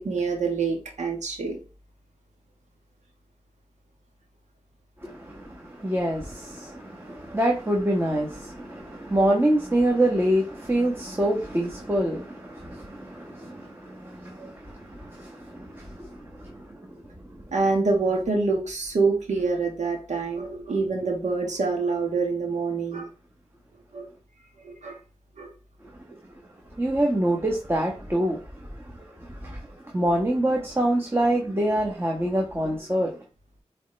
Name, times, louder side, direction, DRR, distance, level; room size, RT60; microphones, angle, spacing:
voice 1, 0.0-1.6 14.4-14.5 17.5-23.1 23.9-24.1 24.6-25.0 25.4-25.5, right 4 dB, 85° right, 1.5 m, -26 dB
voice 2, 5.0-17.0 26.8-33.2, right 1 dB, 20° right, 1.3 m, -26 dB
8.3 x 3.4 x 3.3 m
cardioid pair, 40°, 12 cm